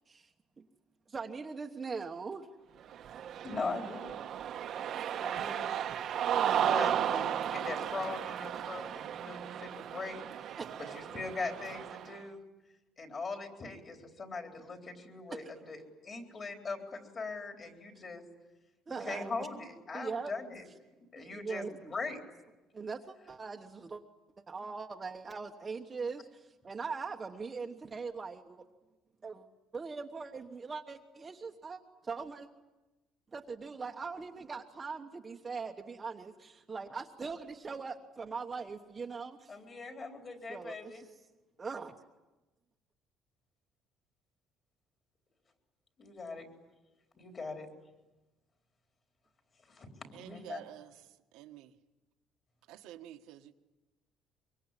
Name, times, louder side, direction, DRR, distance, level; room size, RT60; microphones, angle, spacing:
voice 1, 0.1-0.7 1.1-2.5 4.9-5.0 10.6-10.8 15.3-15.5 17.9-18.0 18.9-19.5 19.9-20.3 21.2-21.9 22.7-24.0 24.5-28.6 29.2-29.5 29.7-32.5 33.3-39.6 40.5-41.1 41.6-42.0, right 4 dB, 20° right, 1.2 m, -41 dB
Cheering, 2.9-12.2, right 9 dB, 50° right, 1.1 m, -34 dB
voice 2, 3.4-4.2 5.2-5.7 6.5-10.5 10.8-12.4 13.0-18.2 18.9-20.6 21.1-22.2 39.5-41.0 46.0-46.5 47.2-47.7 49.7-50.6, left 3 dB, 30° left, 3.9 m, -41 dB
voice 3, 50.1-51.7 52.7-53.5, right 13 dB, 85° right, 1.6 m, -50 dB
24.0 x 24.0 x 9.8 m
cardioid pair, 150°, 0 cm